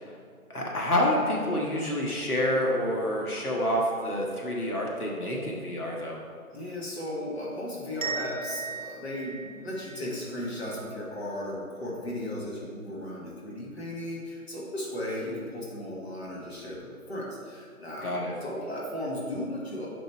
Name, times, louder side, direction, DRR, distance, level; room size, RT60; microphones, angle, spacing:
voice 1, 0.5-6.2 18.0-18.3, left 1 dB, 80° left, -2 dB, 1.5 m, -28 dB
voice 2, 6.5-19.9, left 1 dB, 45° left, -5 dB, 1.6 m, -36 dB
sound 1, 8.0-10.8, right 5 dB, 60° right, 0.9 m, -38 dB
5.8 x 5.3 x 4.5 m, 2.1 s
figure-of-eight pair, 170°, 44 cm